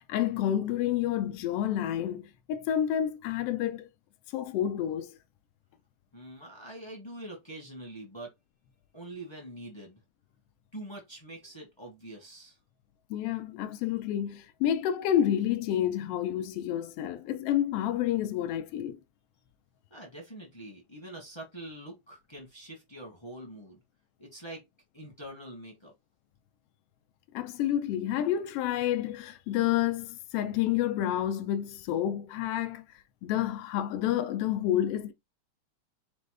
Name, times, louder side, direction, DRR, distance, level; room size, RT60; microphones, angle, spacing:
voice 1, 0.1-3.9 4.3-5.1 13.1-19.0 27.3-32.8 33.2-35.1, left 11 dB, 90° left, 1.3 m, -29 dB
voice 2, 6.1-8.3 8.9-10.0 10.7-12.6 19.9-23.8 24.2-24.6 24.9-25.9, right 1 dB, 25° left, 0.6 m, -44 dB
5.1 x 2.1 x 4.8 m
omnidirectional pair, 3.3 m